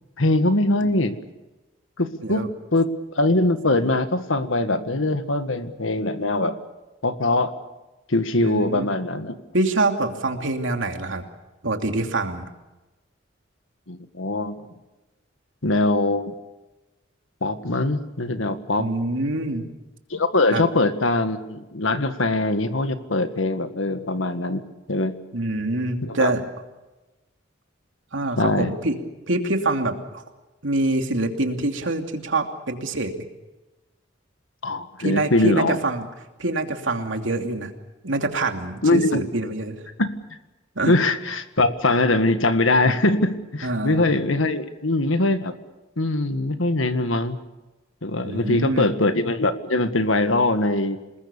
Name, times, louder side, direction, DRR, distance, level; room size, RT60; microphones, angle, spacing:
voice 1, 0.2-1.2 2.0-6.6 7.0-7.5 8.1-9.3 13.9-14.6 15.6-16.3 17.4-18.9 20.1-24.6 24.9-25.1 26.0-26.3 28.4-28.7 34.6-35.8 38.8-39.2 40.0-40.1 40.9-45.5 46.0-47.4 48.0-51.0, left 2 dB, 90° left, 9 dB, 1.7 m, -22 dB
voice 2, 8.4-8.9 9.5-11.2 11.6-12.5 18.8-19.7 20.5-20.6 25.3-26.4 28.1-29.0 29.3-30.2 30.6-33.1 35.0-36.1 36.4-37.7 38.0-39.8 40.8-40.9 43.6-44.1 48.2-48.9, right 2 dB, 75° right, 4 dB, 2.9 m, -25 dB
27.5 x 20.5 x 7.0 m, 1.1 s
head